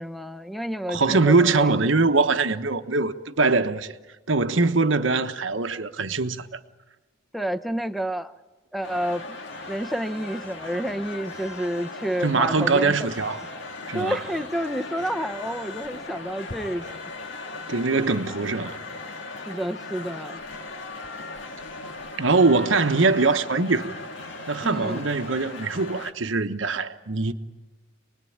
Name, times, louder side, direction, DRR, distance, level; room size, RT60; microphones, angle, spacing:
voice 1, 0.0-1.7 7.3-8.3 8.7-9.4 9.7-12.9 13.9-17.0 19.5-20.4 24.6-25.1, equal, ahead, 0.8 m, -29 dB
voice 2, 0.9-3.9 4.3-6.6 12.2-13.4 13.9-14.2 17.7-18.8 22.2-23.9 24.5-27.3, right 3 dB, 80° right, 1.2 m, -22 dB
sound 1, 8.8-26.1, left 3 dB, 70° left, 1.9 m, -38 dB
27.5 x 20.5 x 8.7 m
head